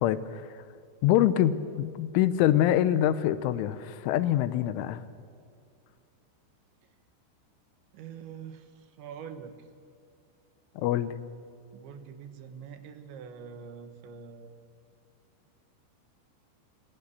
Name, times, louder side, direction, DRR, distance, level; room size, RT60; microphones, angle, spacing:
voice 1, 0.0-0.5 1.0-5.0 10.8-11.2, left 12 dB, 85° left, 14 dB, 3.4 m, -25 dB
voice 2, 7.9-9.7 11.7-14.5, right 7 dB, 75° right, 9 dB, 3.6 m, -44 dB
26.5 x 17.0 x 8.4 m, 2.4 s
omnidirectional pair, 5.5 m